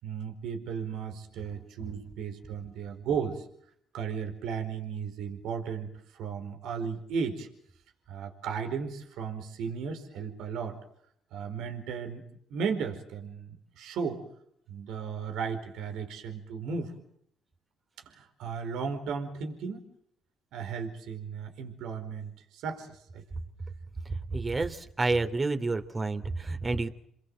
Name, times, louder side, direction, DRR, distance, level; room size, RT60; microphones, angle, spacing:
voice 1, 0.0-3.4 3.9-7.5 8.1-10.8 11.3-12.2 12.5-14.2 14.7-16.9 18.1-19.9 20.5-23.2, right 6 dB, 75° right, 5 dB, 4.7 m, -35 dB
voice 2, 24.0-26.9, right 3 dB, 30° right, 8 dB, 3.2 m, -30 dB
29.5 x 21.5 x 7.7 m, 0.70 s
supercardioid pair, 75°, 0 cm